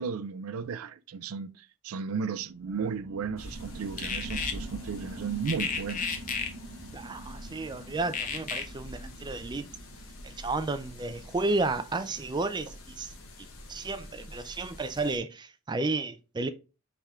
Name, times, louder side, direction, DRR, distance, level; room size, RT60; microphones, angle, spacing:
voice 1, 0.0-6.2, right 6 dB, 90° right, 0.4 m, -34 dB
sound 1, 2.5-13.6 14.1-14.2, right 2 dB, 55° right, 0.9 m, -46 dB
sound 2, 3.4-15.2, left 1 dB, 80° left, 1.0 m, -46 dB
sound 3, 4.0-4.5 5.5-6.5 8.1-8.6, left 6 dB, 40° left, 0.7 m, -32 dB
voice 2, 6.9-9.7 10.2-13.1 13.4-16.5, right 3 dB, 20° right, 0.4 m, -32 dB
3.6 x 3.4 x 4.2 m
head